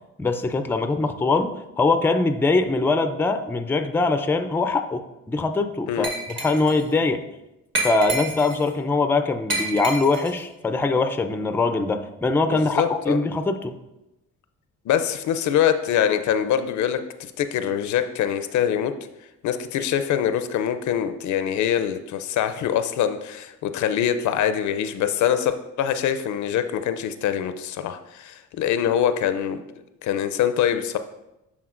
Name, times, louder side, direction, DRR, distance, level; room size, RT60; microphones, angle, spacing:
voice 1, 0.2-7.2 7.8-13.7, left 3 dB, 5° left, 8 dB, 0.4 m, -22 dB
Glass, 6.0-6.8 7.7-8.7 9.5-10.4, right 2 dB, 40° right, 1.4 m, -29 dB
voice 2, 12.5-13.2 14.9-18.9 19.4-29.6 30.0-31.0, left 9 dB, 70° left, 10 dB, 0.5 m, -24 dB
10.5 x 3.7 x 2.5 m, 0.93 s
cardioid pair, 90°, 30 cm